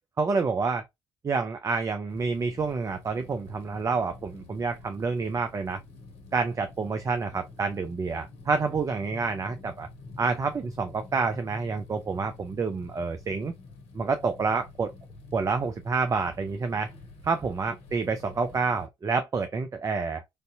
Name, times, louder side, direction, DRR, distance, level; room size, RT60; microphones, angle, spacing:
voice 1, 0.2-0.8 1.2-5.8 6.3-9.9 10.2-13.5 13.9-14.9 15.3-16.9 17.2-20.2, right 4 dB, 25° right, 0.4 m, -28 dB
sound 1, 2.1-18.9, left 3 dB, 55° left, 0.8 m, -47 dB
3.2 x 2.6 x 2.6 m
figure-of-eight pair, 50°, 12 cm